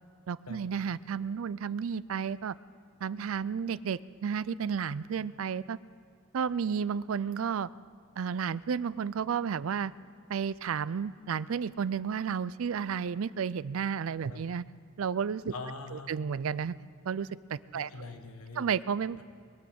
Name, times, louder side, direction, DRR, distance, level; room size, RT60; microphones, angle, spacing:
voice 1, 0.3-2.6 3.0-5.8 6.3-7.7 8.2-9.9 10.3-14.6 15.0-15.5 15.9-16.7 17.1-17.9 18.6-19.2, right 7 dB, 70° right, 18 dB, 0.4 m, -32 dB
voice 2, 15.5-16.1 17.7-18.7, left 3 dB, 85° left, 6 dB, 1.4 m, -42 dB
22.0 x 8.5 x 7.7 m, 2.4 s
head